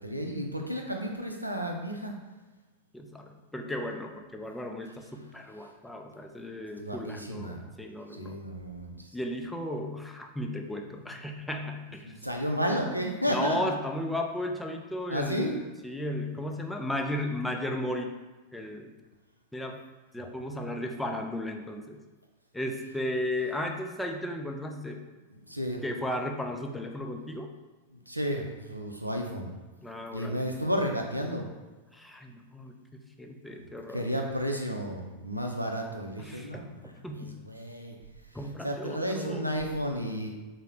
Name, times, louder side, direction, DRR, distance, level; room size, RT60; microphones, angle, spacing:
voice 1, 0.0-2.2 6.8-7.7 8.1-8.9 12.0-13.8 15.1-15.6 25.5-25.8 27.9-29.5 30.1-31.4 33.6-37.9 38.6-40.3, equal, 90° right, 2 dB, 0.4 m, -32 dB
voice 2, 2.9-8.4 9.1-12.1 13.3-18.2 18.5-18.9 19.5-19.8 20.1-22.0 22.5-25.0 25.8-27.5 29.8-30.4 31.9-34.1 36.2-37.4 38.3-39.5, left 1 dB, 5° left, 3 dB, 0.3 m, -35 dB
3.6 x 2.0 x 3.2 m, 1.2 s
figure-of-eight pair, 90°, 0 cm